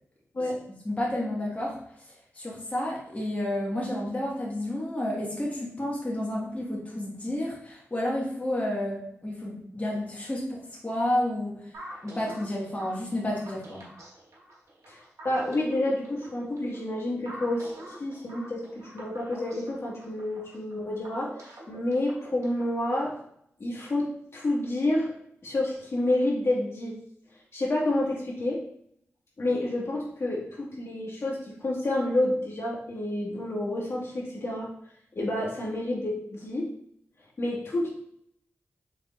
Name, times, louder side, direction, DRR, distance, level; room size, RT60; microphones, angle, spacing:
voice 1, 0.8-1.8 2.0-11.7 12.0-13.8, left 1 dB, 25° left, -4 dB, 1.4 m, -31 dB
sound 1, 11.7-22.8, right 1 dB, 75° right, 1.3 m, -45 dB
voice 2, 14.9-17.7 18.0-21.3 21.7-23.1 23.6-24.1 24.3-25.1 25.4-26.9 27.5-28.6 29.4-34.7 35.1-36.7 37.4-37.9, left 1 dB, 55° left, -4 dB, 1.6 m, -29 dB
4.6 x 3.5 x 2.4 m, 0.71 s
cardioid pair, 40°, 5 cm